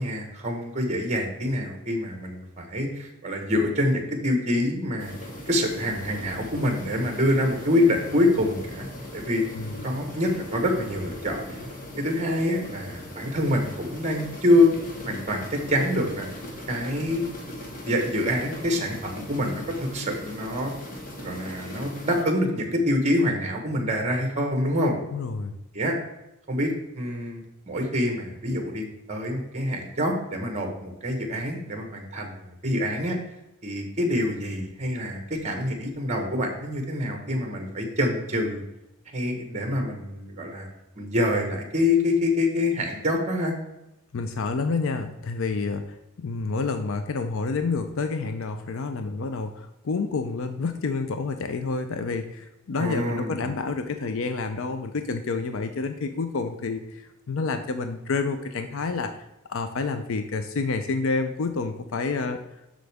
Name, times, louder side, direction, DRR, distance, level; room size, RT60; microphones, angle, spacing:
voice 1, 0.0-5.1 5.5-8.9 9.1-9.5 9.8-11.6 12.0-14.7 15.0-16.3 16.7-17.2 17.8-20.7 21.2-24.9 25.7-26.0 26.5-33.2 33.6-38.6 39.1-40.7 41.0-43.5 52.8-53.5, left 1 dB, 35° right, 3 dB, 1.3 m, -26 dB
sound 1, 5.0-22.2, left 1 dB, 40° left, 1.5 m, -39 dB
voice 2, 25.1-25.6 44.1-45.8 46.2-62.4, left 4 dB, 65° left, 7 dB, 0.5 m, -29 dB
7.7 x 6.2 x 3.5 m, 0.90 s
head